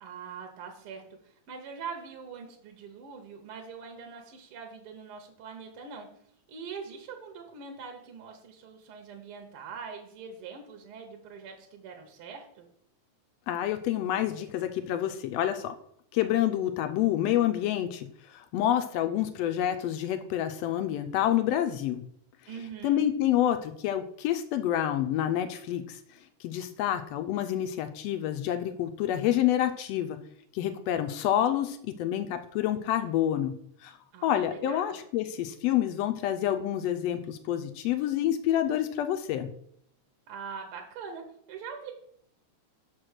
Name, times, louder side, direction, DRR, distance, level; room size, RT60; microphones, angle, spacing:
voice 1, 0.0-6.1 6.5-12.7 22.5-23.0 34.1-35.0 40.3-41.2 41.5-41.9, right 6 dB, 65° right, 3 dB, 1.6 m, -43 dB
voice 2, 13.5-15.8 16.1-22.0 22.8-26.0 26.4-30.2 30.5-33.5 33.8-39.5, left 11 dB, 80° left, 9 dB, 1.5 m, -28 dB
6.0 x 4.7 x 6.4 m, 0.70 s
omnidirectional pair, 3.3 m